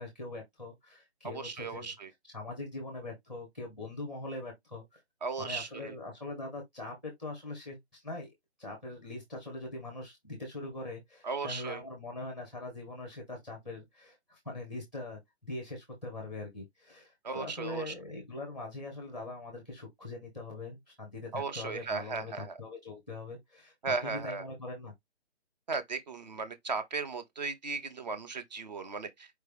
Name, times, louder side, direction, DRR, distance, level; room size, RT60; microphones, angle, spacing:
voice 1, 0.0-1.9 2.2-5.0 5.4-8.3 8.6-23.7 24.0-24.9, left 2 dB, ahead, 0.8 m, -42 dB
voice 2, 1.2-2.1 5.2-5.9 11.2-11.8 17.2-17.9 21.3-22.6 23.8-24.4 25.7-29.3, right 4 dB, 40° right, 1.0 m, -36 dB
4.7 x 3.2 x 3.4 m
hypercardioid pair, 170°, 33 cm